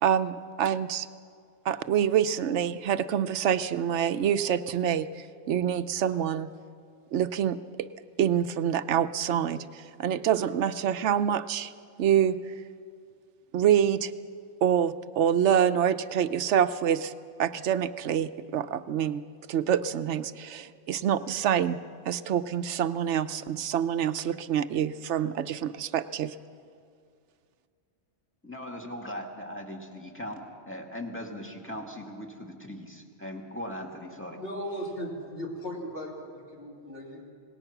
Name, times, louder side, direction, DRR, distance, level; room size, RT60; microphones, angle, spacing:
voice 1, 0.0-1.1 1.6-6.5 7.1-7.9 8.2-11.7 12.0-12.4 13.5-14.1 14.6-17.1 17.4-19.2 19.5-21.8 22.1-26.3, right 9 dB, 80° right, 12 dB, 1.0 m, -26 dB
voice 2, 28.4-30.3 30.7-34.4, left 1 dB, 10° left, 1 dB, 2.2 m, -39 dB
voice 3, 34.4-37.3, equal, 55° left, -3 dB, 3.7 m, -37 dB
26.5 x 19.0 x 5.9 m, 2.3 s
omnidirectional pair, 1.2 m